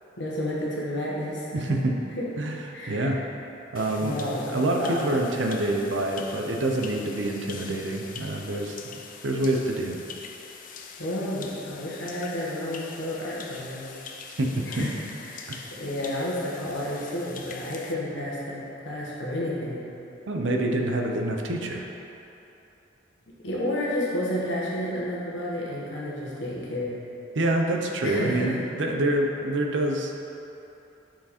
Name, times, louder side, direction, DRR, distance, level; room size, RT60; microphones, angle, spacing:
voice 1, 0.2-1.8 2.2-2.3 2.7-3.1 4.0-5.2 11.0-14.0 14.6-14.9 15.2-19.9 23.4-27.0 28.0-28.5, left 1 dB, 70° left, -6 dB, 1.3 m, -31 dB
voice 2, 1.5-1.9 2.4-2.6 2.9-3.2 3.7-4.2 4.4-8.8 9.2-10.0 14.4-14.9 15.5-15.6 20.3-21.8 27.3-30.1, right 1 dB, 70° right, 2 dB, 0.6 m, -26 dB
sound 1, 3.7-17.9, left 5 dB, 45° left, 0.4 m, -43 dB
5.9 x 4.8 x 4.3 m, 3.0 s
head